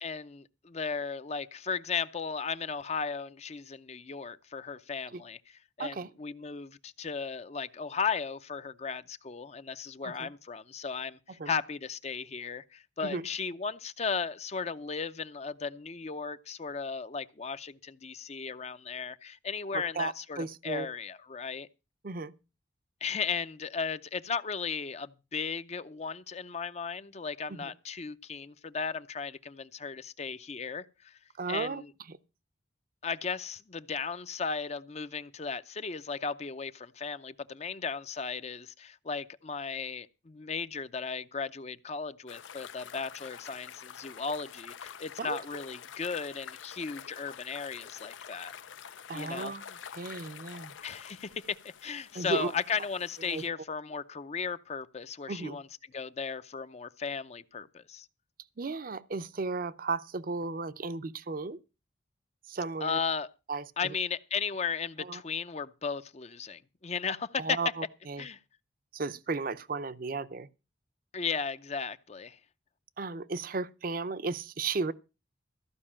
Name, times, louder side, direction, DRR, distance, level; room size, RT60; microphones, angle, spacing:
voice 1, 0.0-21.7 23.0-31.2 31.5-31.9 33.0-48.5 49.1-49.5 50.8-55.6 55.9-58.1 62.8-63.3 63.8-67.6 68.2-68.4 71.1-72.4, left 5 dB, 35° left, 0.5 m, -36 dB
voice 2, 5.8-6.1 10.0-10.3 11.4-11.5 13.0-13.3 19.7-20.9 22.0-22.3 27.5-27.7 31.4-31.8 32.1-32.2 45.2-45.4 49.1-50.7 52.1-52.5 53.3-53.4 55.3-55.6 58.6-61.6 62.5-63.0 63.5-63.9 65.0-65.2 67.4-68.2 68.9-70.5 73.0-74.9, right 3 dB, 50° right, 0.6 m, -35 dB
sound 1, 42.3-53.5, left 8 dB, 85° left, 0.6 m, -47 dB
14.5 x 5.3 x 8.6 m
head